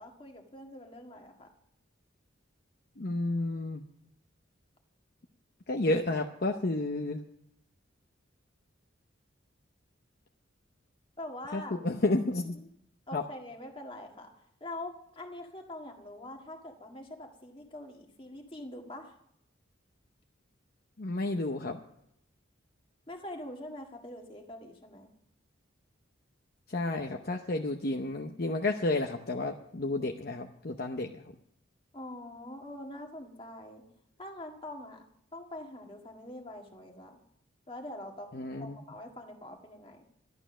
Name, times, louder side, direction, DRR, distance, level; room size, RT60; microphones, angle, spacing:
voice 1, 0.0-1.5 11.2-11.8 13.1-19.2 23.1-25.1 31.9-33.8 34.2-35.0 35.3-37.2 37.7-40.0, left 1 dB, 25° left, 2 dB, 1.7 m, -44 dB
voice 2, 3.0-3.8 5.7-7.2 11.5-12.6 13.1-13.2 21.0-21.8 26.7-31.3 38.3-38.8, left 2 dB, 50° left, 3 dB, 0.8 m, -31 dB
12.5 x 11.5 x 6.2 m, 0.72 s
head